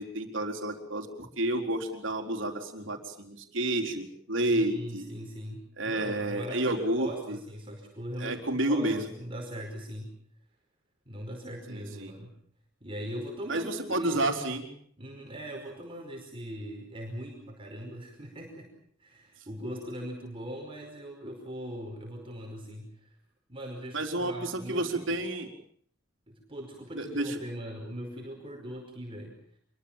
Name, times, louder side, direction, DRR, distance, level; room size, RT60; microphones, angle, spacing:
voice 1, 0.0-5.1 5.8-7.4 8.2-9.0 11.7-12.1 13.5-14.6 23.9-25.5 26.9-27.4, right 1 dB, 70° right, 4 dB, 4.3 m, -30 dB
voice 2, 4.4-10.1 11.1-12.4 12.8-14.2 15.0-18.7 19.0-23.2 23.5-25.2 26.3-29.4, equal, 30° right, 1 dB, 5.1 m, -40 dB
26.5 x 22.5 x 7.4 m, 0.62 s
head